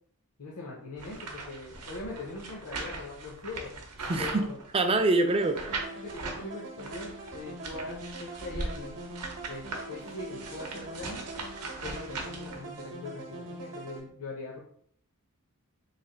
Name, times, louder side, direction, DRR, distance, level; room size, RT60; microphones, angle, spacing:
voice 1, 0.4-3.7 4.1-4.6 6.0-9.0 9.4-11.2 11.8-14.6, left 3 dB, 70° left, -3 dB, 0.6 m, -41 dB
sound 1, 1.0-5.0 5.5-6.4 6.8-12.8, right 3 dB, 90° right, 0.7 m, -40 dB
voice 2, 4.1-4.5 4.7-5.8, right 2 dB, 25° right, 7 dB, 0.3 m, -25 dB
sound 2, 5.3-14.0, right 2 dB, 55° right, 0.8 m, -43 dB
3.2 x 2.4 x 3.8 m, 0.64 s
head